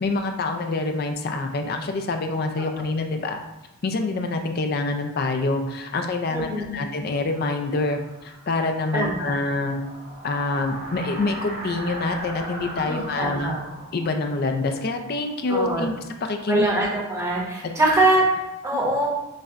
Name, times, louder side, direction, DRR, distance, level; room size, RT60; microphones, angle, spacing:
voice 1, 0.0-3.4 3.8-9.8 10.2-13.6 13.9-15.9 16.2-16.7, left 3 dB, 45° left, 5 dB, 0.4 m, -26 dB
voice 2, 6.3-6.8 8.9-9.3 12.8-13.6 15.5-15.9 16.5-19.1, right 1 dB, 15° right, -5 dB, 0.9 m, -23 dB
sound 1, 7.3-16.0, right 1 dB, 90° right, 1.4 m, -39 dB
6.4 x 2.2 x 2.4 m, 1.0 s
head